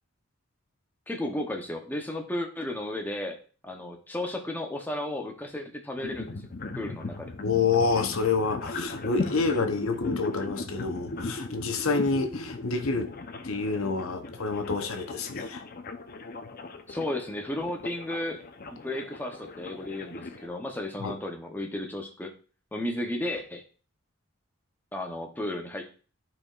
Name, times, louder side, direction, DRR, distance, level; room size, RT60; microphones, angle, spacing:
voice 1, 1.1-3.4 3.6-6.5 6.8-7.3 16.9-18.4 18.7-22.3 22.7-23.6 24.9-26.0, left 1 dB, 10° left, 0.8 m, -34 dB
sound 1, 6.0-20.5, left 2 dB, 45° left, 0.7 m, -38 dB
voice 2, 7.4-13.1 13.4-15.6 21.0-21.1, left 4 dB, 70° left, 0.8 m, -28 dB
13.0 x 4.5 x 2.4 m
head